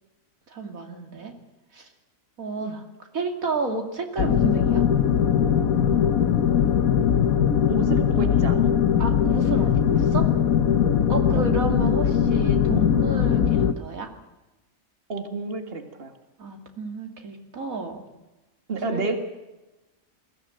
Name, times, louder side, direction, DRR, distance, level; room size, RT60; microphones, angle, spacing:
voice 1, 0.5-1.3 1.7-1.9 2.4-2.8 3.1-4.8 9.0-10.3 11.1-14.1 16.4-18.0 18.8-19.0, right 3 dB, 85° right, 4 dB, 3.0 m, -31 dB
sound 1, 4.2-13.7, left 8 dB, 85° left, 1.4 m, -20 dB
voice 2, 7.7-8.7 11.3-11.5 15.1-16.1 18.7-19.2, right 2 dB, 45° right, 6 dB, 2.2 m, -30 dB
22.5 x 16.0 x 9.0 m, 1.0 s
omnidirectional pair, 1.4 m